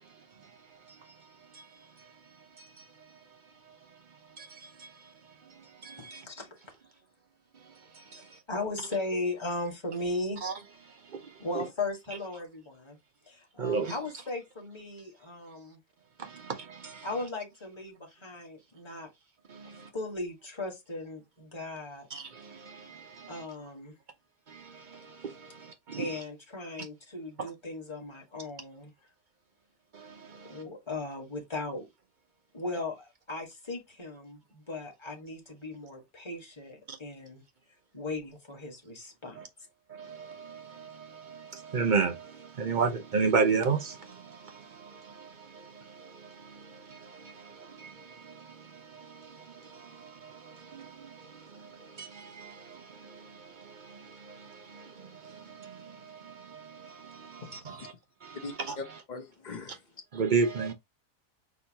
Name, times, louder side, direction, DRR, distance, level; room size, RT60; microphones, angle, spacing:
voice 1, 4.3-5.1 5.6-6.3 7.9-8.4 10.4-10.5 10.9-11.6 13.6-14.0 16.2-17.1 19.5-19.9 22.1-23.5 24.5-26.2 29.9-30.6 36.9-37.0 39.3-39.5 39.9-57.9 58.2-58.8 60.1-60.7, right 5 dB, 60° right, 0.5 m, -35 dB
voice 2, 6.0-6.5 8.5-10.4 11.4-13.0 13.3-15.8 17.0-19.1 19.9-22.1 23.3-23.9 26.0-28.9 30.4-31.9 32.5-37.4 37.9-39.4, left 2 dB, 20° left, 1.3 m, -37 dB
voice 3, 57.4-57.9 58.3-59.8, left 4 dB, 35° left, 0.8 m, -42 dB
6.1 x 2.8 x 2.8 m
omnidirectional pair, 1.7 m